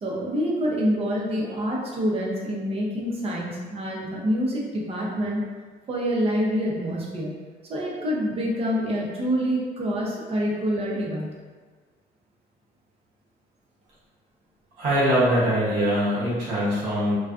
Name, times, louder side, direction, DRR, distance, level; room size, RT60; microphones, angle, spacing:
voice 1, 0.0-5.4 5.9-7.3 7.7-11.3, equal, 35° right, -4 dB, 0.6 m, -26 dB
voice 2, 14.8-17.1, equal, 75° right, -8 dB, 0.9 m, -22 dB
2.4 x 2.2 x 2.4 m, 1.4 s
cardioid pair, 110°, 17 cm